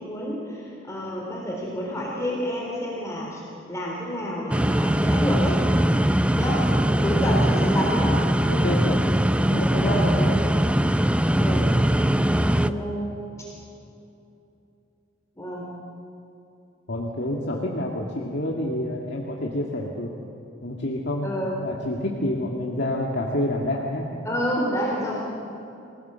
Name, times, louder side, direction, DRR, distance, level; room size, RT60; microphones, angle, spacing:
voice 1, 0.0-3.4 3.7-5.6 6.3-8.1 9.8-10.4 11.4-11.7 12.3-13.1 13.4-13.5 15.4-15.7 21.2-21.6 24.2-25.2, equal, 15° left, -3 dB, 3.5 m, -29 dB
sound 1, 4.5-12.7, right 1 dB, 5° right, 0.5 m, -21 dB
voice 2, 8.5-9.0 9.5-10.0 16.9-20.1 20.6-24.1, left 1 dB, 60° left, -2 dB, 2.0 m, -28 dB
27.5 x 18.0 x 6.9 m, 2.8 s
head